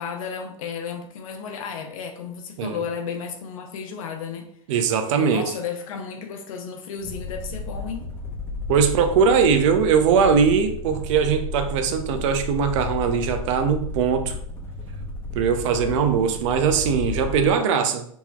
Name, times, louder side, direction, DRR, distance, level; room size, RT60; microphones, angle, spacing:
voice 1, 0.0-4.5 5.1-8.1, left 6 dB, 70° left, 0.6 m, -33 dB
voice 2, 4.7-5.4 8.7-14.4 15.3-18.1, right 6 dB, 60° right, 0.6 m, -20 dB
sound 1, 6.9-17.6, left 3 dB, 10° left, 1.0 m, -33 dB
5.4 x 3.0 x 2.4 m
hypercardioid pair, 115°, 18 cm